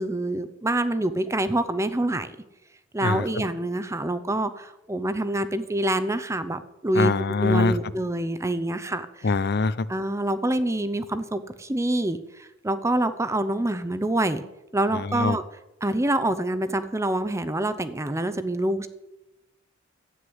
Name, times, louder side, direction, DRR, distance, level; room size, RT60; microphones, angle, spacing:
voice 1, 0.0-2.4 2.9-7.1 7.4-9.4 9.9-14.4 14.7-15.4 15.8-18.9, right 1 dB, 15° right, 12 dB, 0.7 m, -26 dB
voice 2, 7.0-7.7 9.2-9.9 15.1-15.4, left 3 dB, 55° left, 16 dB, 0.6 m, -22 dB
12.5 x 9.6 x 8.0 m, 0.93 s
head